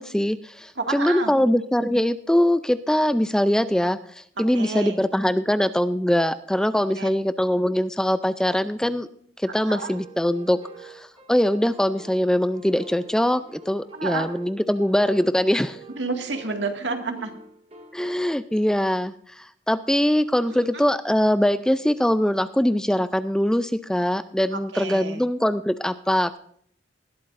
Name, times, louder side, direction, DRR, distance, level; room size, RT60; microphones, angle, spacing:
voice 1, 0.0-9.1 9.5-15.8 17.9-26.4, equal, 5° left, 13 dB, 0.4 m, -22 dB
voice 2, 0.8-1.4 4.5-5.0 6.9-7.1 9.6-9.9 13.9-14.3 15.9-17.3 20.5-20.7 24.5-25.2, right 3 dB, 75° right, 4 dB, 2.0 m, -30 dB
sound 1, 9.5-18.3, right 2 dB, 35° right, 2.1 m, -47 dB
19.0 x 12.5 x 2.6 m, 0.63 s
head